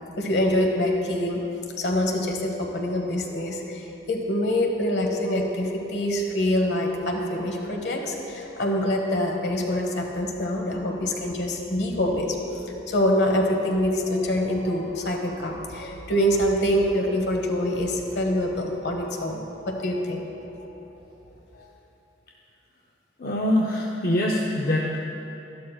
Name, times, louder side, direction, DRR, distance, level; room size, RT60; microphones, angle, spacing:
voice 1, 0.2-1.4 1.8-12.4 12.9-20.2 20.9-21.0 21.5-21.7, left 1 dB, 70° left, 1 dB, 1.2 m, -25 dB
voice 2, 23.2-25.0, left 1 dB, 50° left, -1 dB, 0.6 m, -24 dB
12.5 x 12.0 x 2.3 m, 2.9 s
head